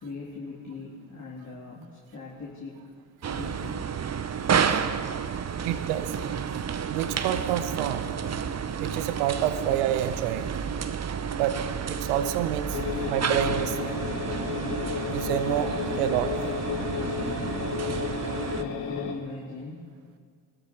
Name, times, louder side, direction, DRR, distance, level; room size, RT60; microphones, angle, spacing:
voice 1, 0.0-2.8 3.3-3.9 14.0-14.1 18.5-19.9, left 3 dB, 40° left, -5 dB, 3.2 m, -40 dB
sound 1, 3.2-18.6, right 7 dB, 35° right, 1.0 m, -31 dB
voice 2, 5.6-6.2 6.8-8.3 8.7-10.7 11.3-12.8 13.1-13.8 15.1-16.3, right 10 dB, 80° right, 11 dB, 0.9 m, -28 dB
sound 2, 12.7-19.1, left 7 dB, 85° left, 1.5 m, -32 dB
22.0 x 13.5 x 4.5 m, 2.1 s
hypercardioid pair, 55°, 44 cm